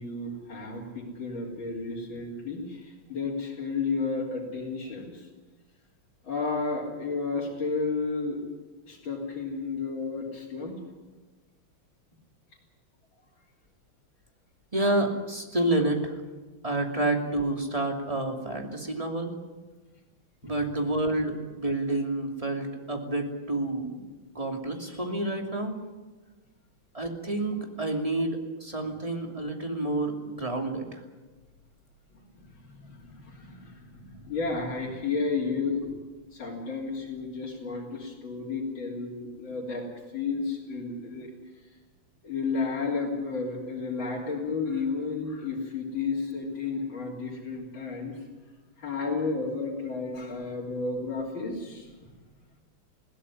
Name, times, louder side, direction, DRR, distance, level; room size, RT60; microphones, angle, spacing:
voice 1, 0.0-5.3 6.2-8.4 8.9-10.8 32.6-35.9 36.3-39.9 40.1-41.3 42.2-48.1 48.8-51.9, left 4 dB, 70° left, -6 dB, 4.2 m, -32 dB
voice 2, 14.7-16.2 16.6-19.3 20.4-24.0 24.3-25.8 26.9-31.0, right 2 dB, 15° right, 3 dB, 2.8 m, -29 dB
21.5 x 16.5 x 9.9 m, 1.3 s
omnidirectional pair, 2.2 m